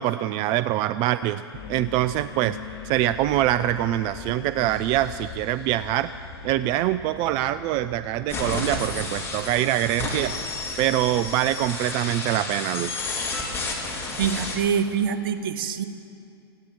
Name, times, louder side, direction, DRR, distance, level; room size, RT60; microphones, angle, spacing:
voice 1, 0.0-1.4 1.7-2.6 2.8-6.1 6.4-10.4 10.8-13.0, right 14 dB, 35° right, 13 dB, 0.3 m, -24 dB
sound 1, 1.5-10.3, left 6 dB, 65° left, 2.0 m, -41 dB
sound 2, 8.3-14.6, left 3 dB, 15° left, 3.4 m, -31 dB
voice 2, 14.2-15.8, right 7 dB, 60° right, 8 dB, 1.1 m, -25 dB
15.5 x 9.6 x 9.1 m, 2.6 s
hypercardioid pair, 110°, 14 cm